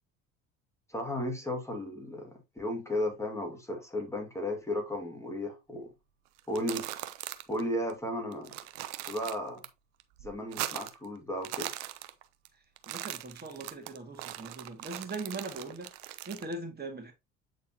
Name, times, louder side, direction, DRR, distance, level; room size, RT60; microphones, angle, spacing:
voice 1, 0.9-5.9 6.5-6.9 7.5-8.5 9.1-9.7 10.2-11.7, left 1 dB, 5° left, 2.1 m, -34 dB
sound 1, 6.4-7.6 7.9-8.0 8.3-9.7 10.0-11.1 11.3-12.5 12.8-16.5, right 14 dB, 80° right, 0.8 m, -40 dB
voice 2, 12.9-15.9 16.3-17.1, right 3 dB, 25° right, 2.2 m, -40 dB
8.6 x 4.1 x 2.9 m
hypercardioid pair, 70°, 37 cm